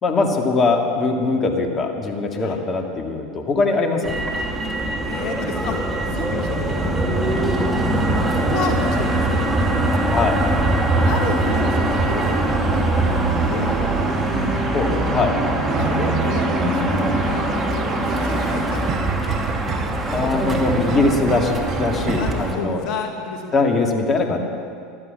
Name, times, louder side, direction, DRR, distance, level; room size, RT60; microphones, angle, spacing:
voice 1, 0.0-4.2 10.1-10.4 14.7-15.4 20.1-22.8 23.5-24.4, left 3 dB, 35° left, 3 dB, 2.2 m, -21 dB
Motor vehicle (road), 4.0-22.5, right 1 dB, 15° right, 2.9 m, -22 dB
voice 2, 5.0-7.5 7.9-10.2 11.0-14.5 15.7-17.5 17.9-19.5 22.1-24.1, left 5 dB, 55° left, 3 dB, 1.8 m, -32 dB
sound 1, 11.5-22.3, right 8 dB, 50° right, 0.9 m, -30 dB
15.0 x 12.5 x 7.2 m, 2.3 s
hypercardioid pair, 80°, 0 cm